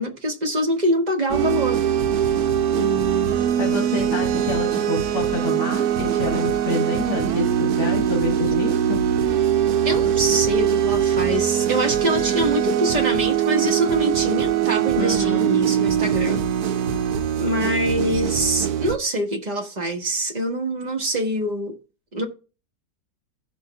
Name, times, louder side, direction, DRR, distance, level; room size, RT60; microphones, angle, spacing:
voice 1, 0.0-1.8 2.7-3.5 9.8-16.5 17.4-21.7 22.1-22.2, right 1 dB, 30° right, 1.2 m, -24 dB
sound 1, 1.3-19.0, right 9 dB, 75° right, 1.2 m, -22 dB
voice 2, 3.4-9.0 15.0-15.6, left 3 dB, 70° left, 1.9 m, -28 dB
16.0 x 5.6 x 2.3 m
omnidirectional pair, 1.8 m